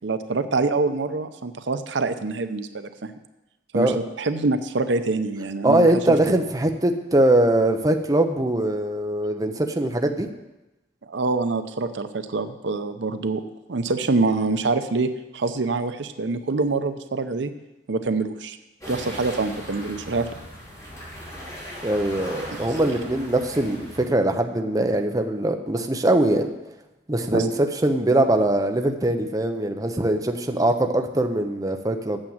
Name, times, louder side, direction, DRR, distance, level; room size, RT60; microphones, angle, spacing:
voice 1, 0.0-3.1 3.7-6.2 11.0-13.4 13.7-17.5 17.9-18.6 18.9-20.3 27.3-27.5, right 3 dB, 75° right, 10 dB, 0.7 m, -25 dB
voice 2, 5.6-10.3 21.8-26.5 27.1-32.2, right 1 dB, 20° right, 5 dB, 0.7 m, -22 dB
sound 1, 18.8-24.1, equal, 20° left, 3.5 m, -38 dB
8.8 x 7.5 x 7.3 m, 0.99 s
head